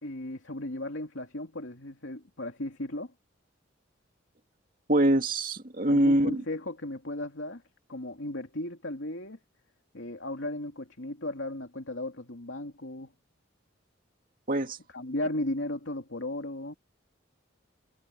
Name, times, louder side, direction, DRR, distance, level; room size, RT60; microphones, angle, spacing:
voice 1, 0.0-3.1 5.9-7.6 7.9-9.4 9.9-13.1 14.9-16.7, left 1 dB, 70° left, 2.7 m, -36 dB
voice 2, 4.9-6.4 14.5-14.8, right 1 dB, 45° right, 2.4 m, -24 dB
head